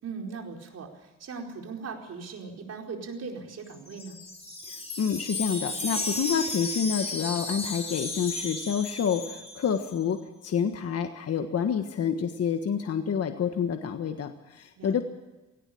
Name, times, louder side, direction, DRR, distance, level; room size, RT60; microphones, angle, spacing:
voice 1, 0.0-4.2 14.8-15.0, right 5 dB, 55° right, 2 dB, 4.7 m, -39 dB
Wind chime, 3.7-9.9, left 2 dB, 20° left, 5.0 m, -34 dB
voice 2, 4.7-15.0, left 7 dB, 55° left, 6 dB, 1.5 m, -28 dB
18.0 x 17.5 x 8.6 m, 1.1 s
cardioid pair, 90°, 30 cm